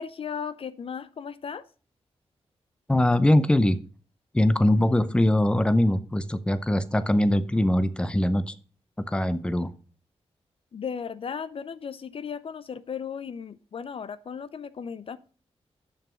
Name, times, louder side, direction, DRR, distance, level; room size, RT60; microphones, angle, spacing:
voice 1, 0.0-1.6 10.7-15.2, left 6 dB, 55° left, 15 dB, 0.5 m, -36 dB
voice 2, 2.9-3.8 4.3-8.5 9.0-9.7, left 1 dB, 10° left, 14 dB, 0.6 m, -22 dB
7.0 x 6.0 x 6.1 m, 0.39 s
wide cardioid pair, 95°, 11 cm